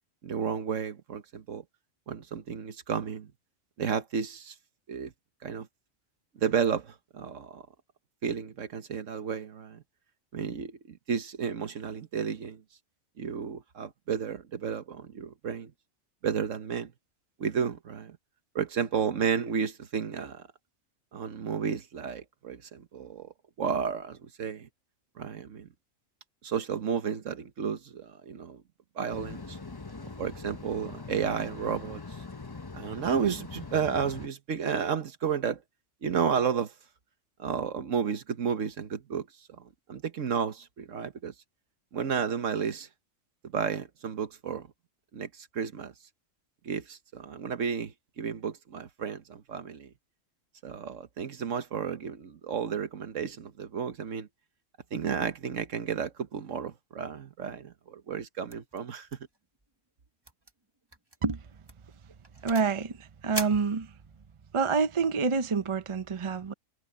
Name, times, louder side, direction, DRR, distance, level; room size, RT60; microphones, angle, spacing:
voice 1, 0.2-1.6 2.1-3.3 3.8-4.5 4.9-5.1 5.4-5.7 6.4-7.6 8.2-9.8 10.3-12.6 13.2-15.7 16.2-16.9 17.4-18.2 18.5-20.5 21.1-24.7 25.2-25.7 26.4-28.6 28.9-29.6 30.2-32.0 32.7-35.6 36.0-36.7 37.4-39.3 39.6-41.3 41.9-42.9 43.5-44.7 45.1-45.9 46.6-49.9 50.6-54.3 54.9-59.1, right 7 dB, 70° right, 1.5 m, -32 dB
sound 1, 29.1-34.3, left 3 dB, 20° left, 0.8 m, -42 dB
sound 2, 58.5-58.8 59.1-59.4 59.6-59.7 60.2-60.5 60.9-61.2 61.7-62.8 63.3-64.3, right 2 dB, 20° right, 1.4 m, -40 dB
voice 2, 62.4-63.9 64.5-66.5, right 5 dB, 35° right, 0.5 m, -27 dB
omnidirectional pair, 1.4 m